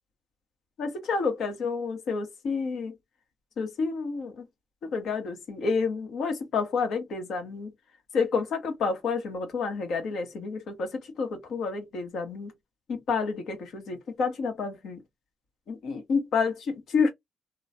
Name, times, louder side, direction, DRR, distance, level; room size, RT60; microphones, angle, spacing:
voice 1, 0.8-2.9 3.6-4.3 4.8-7.7 8.1-10.9 11.2-12.5 13.1-15.0 15.7-17.1, left 4 dB, 70° left, 1.2 m, -29 dB
3.0 x 2.3 x 2.5 m
cardioid pair, 90°, 0 cm